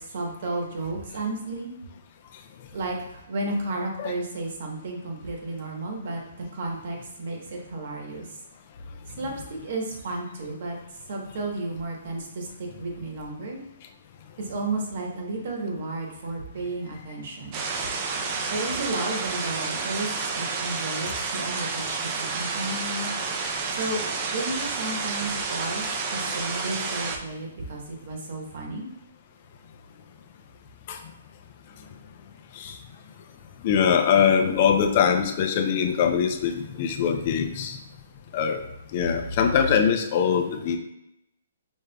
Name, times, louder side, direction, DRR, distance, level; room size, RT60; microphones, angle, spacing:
voice 1, 0.0-1.7 2.7-8.4 9.2-10.8 11.1-13.6 14.4-17.6 18.5-23.1 23.7-28.9, right 2 dB, 55° right, 0 dB, 1.1 m, -33 dB
sound 1, 17.5-27.2, right 4 dB, 30° right, 0.5 m, -30 dB
voice 2, 33.6-37.8 38.3-38.6 38.9-40.8, left 7 dB, 35° left, 5 dB, 0.5 m, -22 dB
5.2 x 3.3 x 2.2 m, 0.84 s
hypercardioid pair, 160°, 0 cm